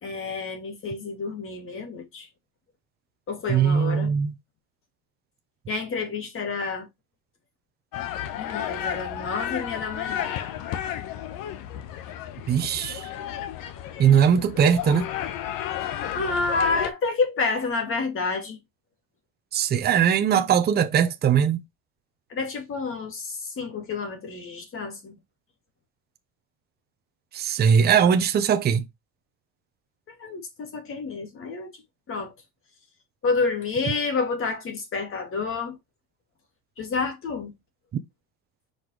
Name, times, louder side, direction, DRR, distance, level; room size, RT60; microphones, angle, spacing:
voice 1, 0.0-2.3 3.3-4.1 5.7-6.9 8.4-10.3 16.1-18.6 22.3-25.2 30.2-31.7 32.1-32.3 33.2-35.8 36.8-37.5, left 4 dB, 30° left, 2.4 m, -29 dB
voice 2, 3.5-4.3 12.5-13.1 14.0-15.1 19.5-21.6 27.3-28.8, right 8 dB, 25° right, 0.8 m, -20 dB
sound 1, 7.9-16.9, left 10 dB, 55° left, 1.2 m, -32 dB
5.9 x 5.2 x 3.1 m
cardioid pair, 140°, 40 cm